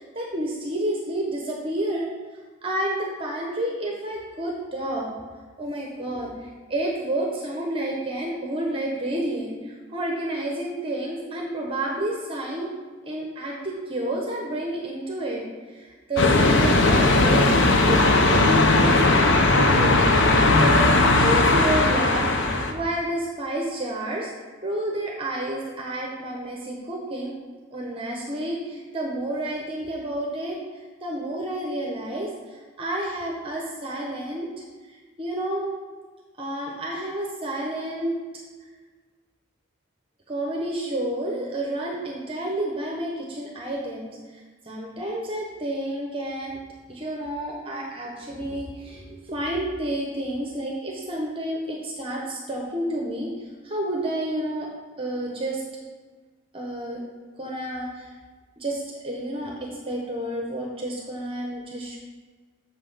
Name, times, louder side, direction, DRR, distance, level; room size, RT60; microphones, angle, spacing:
voice 1, 0.0-2.1 2.6-5.1 5.6-12.7 13.0-15.4 15.7-20.9 21.2-22.3 22.7-24.3 24.6-27.4 27.7-30.6 31.0-34.5 35.2-35.7 36.4-38.1 40.3-46.6 46.9-54.7 55.0-55.6 56.5-57.0 57.4-58.1 58.6-59.5 59.9-62.0, right 1 dB, 25° right, -1 dB, 1.0 m, -30 dB
sound 1, 16.2-22.7, left 2 dB, 60° left, 0.8 m, -18 dB
7.0 x 5.6 x 5.6 m, 1.4 s
head